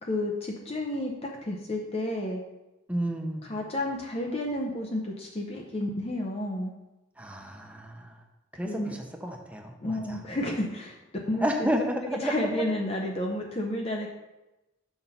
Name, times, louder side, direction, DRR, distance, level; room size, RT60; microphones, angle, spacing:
voice 1, 0.0-2.4 3.4-6.7 8.6-8.9 9.8-11.0 11.3-11.7 12.1-14.1, left 1 dB, 30° left, 0 dB, 0.7 m, -31 dB
voice 2, 2.9-3.6 7.2-8.1 8.5-10.2 11.3-12.6, equal, 5° right, 2 dB, 0.8 m, -31 dB
6.6 x 5.9 x 4.2 m, 1.0 s
head